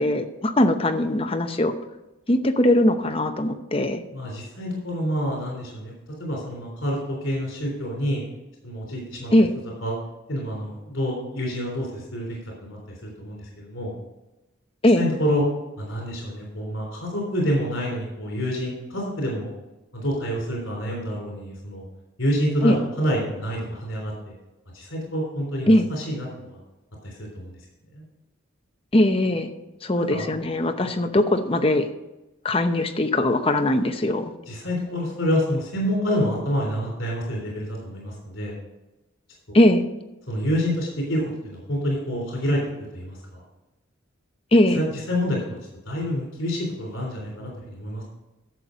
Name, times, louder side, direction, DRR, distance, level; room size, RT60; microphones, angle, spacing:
voice 1, 0.0-1.7 2.3-4.0 9.3-9.5 14.8-15.0 22.6-22.8 25.7-25.9 28.9-29.5 29.8-31.9 32.4-34.3 39.5-39.8 44.5-44.8, left 1 dB, 25° left, 6 dB, 0.8 m, -20 dB
voice 2, 4.1-5.9 6.2-8.2 8.6-9.3 9.8-9.9 10.3-12.4 12.6-13.9 15.0-15.4 15.8-19.5 19.9-21.8 22.2-24.1 24.7-26.6 27.0-27.5 27.9-28.0 30.0-30.3 30.8-30.9 34.5-38.6 39.5-39.6 40.3-42.6 42.9-43.4 44.8-45.6 45.9-48.0, equal, 70° left, -1 dB, 3.5 m, -27 dB
11.5 x 7.2 x 5.1 m, 1.0 s
head